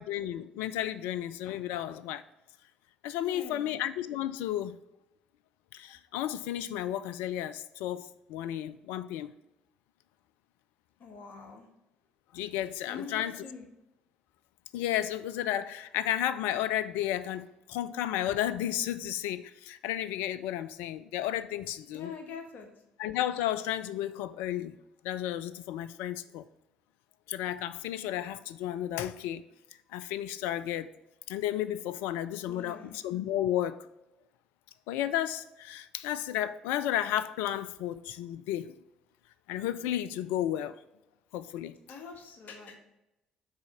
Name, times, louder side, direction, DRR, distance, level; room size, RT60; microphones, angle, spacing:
voice 1, 0.0-2.2 3.0-4.8 5.7-9.3 12.3-13.4 14.7-22.1 23.0-24.7 25.0-26.4 27.3-29.4 29.9-30.9 31.3-33.8 34.9-38.7 39.5-40.8 41.3-41.7, left 12 dB, 70° left, 14 dB, 0.3 m, -33 dB
voice 2, 3.2-3.7 11.0-11.7 12.9-13.7 21.9-22.7 32.4-33.0 41.9-42.8, left 5 dB, 50° left, 4 dB, 1.3 m, -44 dB
6.2 x 4.1 x 5.4 m, 0.94 s
figure-of-eight pair, 45°, 4 cm